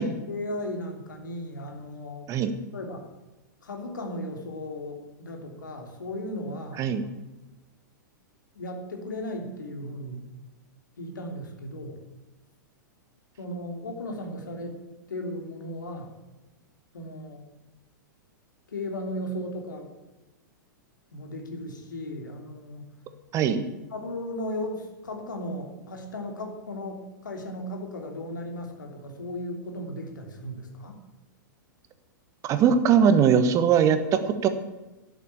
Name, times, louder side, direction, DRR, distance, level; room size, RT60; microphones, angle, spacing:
voice 1, 0.3-2.3 2.7-3.0 3.6-6.9 8.5-10.2 11.0-12.0 13.4-14.8 15.1-16.1 16.9-17.4 18.7-19.9 21.1-22.9 23.9-31.0, left 1 dB, 70° left, 3 dB, 3.1 m, -36 dB
voice 2, 32.4-34.5, right 7 dB, 30° right, 10 dB, 1.4 m, -21 dB
11.5 x 8.3 x 8.3 m, 1.1 s
figure-of-eight pair, 100°, 11 cm